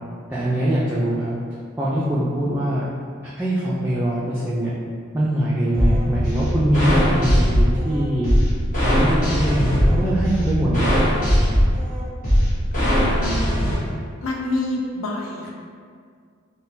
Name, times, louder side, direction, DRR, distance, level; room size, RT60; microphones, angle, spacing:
voice 1, 0.3-1.3 1.8-2.8 3.4-4.7 5.1-8.3 8.8-11.1, right 1 dB, 10° right, -9 dB, 0.3 m, -22 dB
sound 1, 5.7-13.7, equal, 40° left, 1.1 m, -20 dB
voice 2, 12.7-13.9 14.2-15.5, left 2 dB, 80° left, -1 dB, 0.5 m, -28 dB
3.8 x 2.1 x 2.6 m, 2.1 s
head